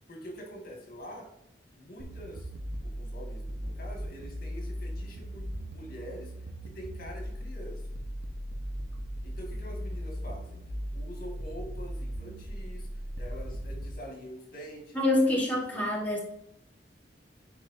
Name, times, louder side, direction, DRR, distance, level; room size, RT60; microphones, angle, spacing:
voice 1, 0.1-1.3 1.7-2.5 2.8-5.4 5.7-6.3 6.6-7.8 9.2-10.6 10.9-12.9 13.2-15.4 15.7-15.9, equal, 55° left, 1 dB, 2.2 m, -45 dB
sound 1, 2.0-13.9, equal, 80° right, 1.1 m, -38 dB
voice 2, 14.9-16.2, left 1 dB, 10° left, -4 dB, 1.5 m, -26 dB
10.5 x 4.7 x 2.8 m, 0.79 s
head